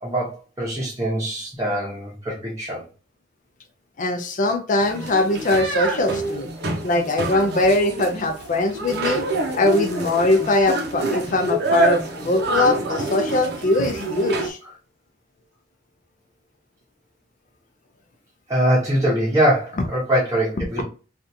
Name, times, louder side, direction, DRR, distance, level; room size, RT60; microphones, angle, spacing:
voice 1, 0.0-2.8 18.5-20.8, right 1 dB, 15° right, -6 dB, 0.8 m, -23 dB
voice 2, 4.0-6.5 6.8-9.3 9.5-14.6, left 2 dB, 40° left, 6 dB, 0.5 m, -21 dB
sound 1, 4.8-14.5, right 2 dB, 60° right, 0.7 m, -27 dB
3.4 x 2.5 x 2.7 m, 0.35 s
head